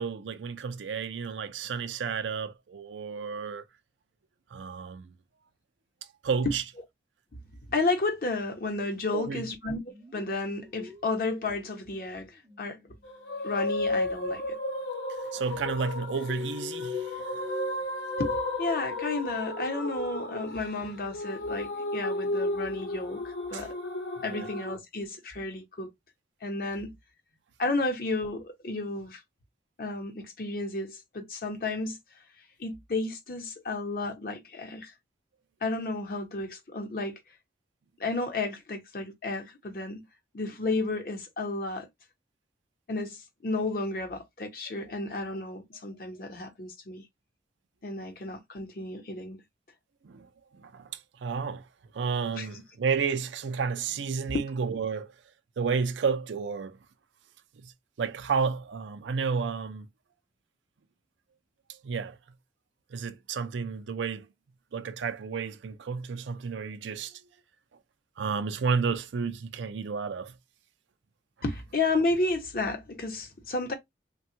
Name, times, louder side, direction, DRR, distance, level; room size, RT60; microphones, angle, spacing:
voice 1, 0.0-3.6 4.5-5.1 6.2-6.6 9.1-9.5 15.3-17.4 23.5-23.7 24.3-24.5 50.0-50.3 50.6-50.9 51.2-51.7 51.9-55.1 55.6-56.8 57.6-57.7 58.0-59.9 61.8-62.2 62.9-64.3 64.7-67.2 68.2-70.3, right 5 dB, 90° right, 0.4 m, -31 dB
voice 2, 7.7-9.8 10.1-12.3 12.6-12.8 13.4-14.6 18.2-23.8 24.2-25.9 26.4-27.0 27.6-29.2 29.8-32.0 32.6-34.9 35.6-37.2 38.0-40.1 40.3-41.9 42.9-47.0 47.8-49.4 52.4-52.6 54.3-54.4 71.4-73.7, left 2 dB, 50° left, 0.8 m, -32 dB
sound 1, 9.8-12.1 12.3-13.0 16.3-19.2 19.4-19.6 21.2-24.0, left 6 dB, 20° right, 0.4 m, -44 dB
sound 2, 13.0-24.8, left 2 dB, 90° left, 0.8 m, -33 dB
3.4 x 2.2 x 2.8 m
head